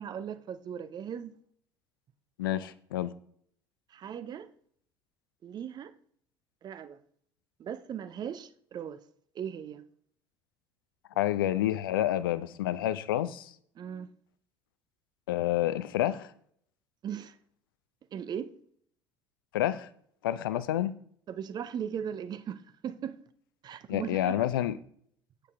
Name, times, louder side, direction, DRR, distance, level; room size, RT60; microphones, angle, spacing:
voice 1, 0.0-1.3 3.9-4.5 5.4-5.9 6.6-7.0 7.6-9.0 9.3-9.8 13.8-14.1 17.0-17.4 18.1-18.5 20.5-20.6 21.3-23.2 23.6-24.3, right 8 dB, 35° right, 0.6 m, -38 dB
voice 2, 2.4-3.1 11.2-13.5 15.3-16.3 19.5-19.9 20.2-20.9 23.9-24.8, left 13 dB, 70° left, 0.5 m, -29 dB
8.2 x 6.6 x 3.5 m
figure-of-eight pair, 60°, 12 cm